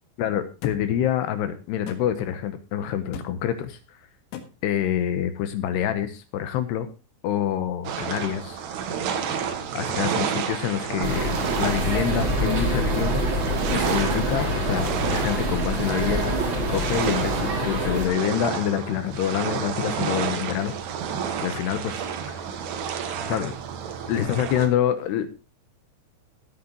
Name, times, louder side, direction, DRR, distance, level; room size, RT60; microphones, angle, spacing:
voice 1, 0.2-3.8 4.6-6.9 7.2-8.6 9.7-13.2 13.7-20.7 21.4-22.0 22.3-22.4 23.3-23.5 24.1-25.3, left 10 dB, 75° left, 10 dB, 2.6 m, -26 dB
sound 1, 0.6-0.8 1.9-2.0 3.1-3.3 4.3-4.5, left 7 dB, 90° left, 4.3 m, -36 dB
sound 2, 7.8-24.7, right 7 dB, 65° right, 3.2 m, -30 dB
sound 3, 11.0-18.1, right 1 dB, 35° right, 2.3 m, -26 dB
16.0 x 9.3 x 3.0 m, 0.31 s
omnidirectional pair, 5.9 m